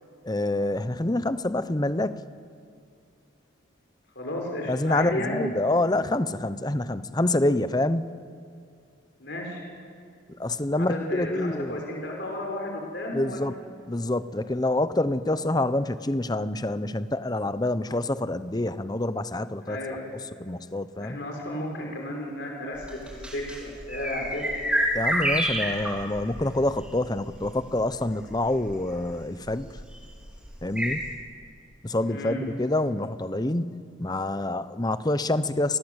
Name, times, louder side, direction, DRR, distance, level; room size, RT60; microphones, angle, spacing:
voice 1, 0.2-2.2 4.7-8.1 10.4-11.8 13.1-13.5 13.9-19.8 20.4-21.2 24.9-29.7 30.6-31.1 31.8-35.8, left 2 dB, 20° left, 13 dB, 0.7 m, -27 dB
voice 2, 4.1-5.5 9.2-9.6 10.8-13.4 19.6-20.0 21.0-22.9 23.3-24.5 32.1-32.4, left 1 dB, 60° left, 0 dB, 5.1 m, -33 dB
sound 1, 22.8-31.1, equal, 5° right, 4.6 m, -30 dB
28.0 x 20.5 x 8.1 m, 2.5 s
head